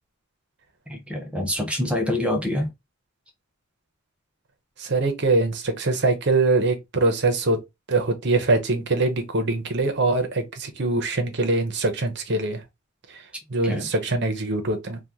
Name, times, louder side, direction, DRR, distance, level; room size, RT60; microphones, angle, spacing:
voice 1, 0.9-2.7 13.6-13.9, left 1 dB, 5° right, 0.7 m, -26 dB
voice 2, 4.8-7.6 7.9-12.6 13.5-15.0, right 2 dB, 55° right, 0.8 m, -23 dB
2.9 x 2.4 x 3.6 m
head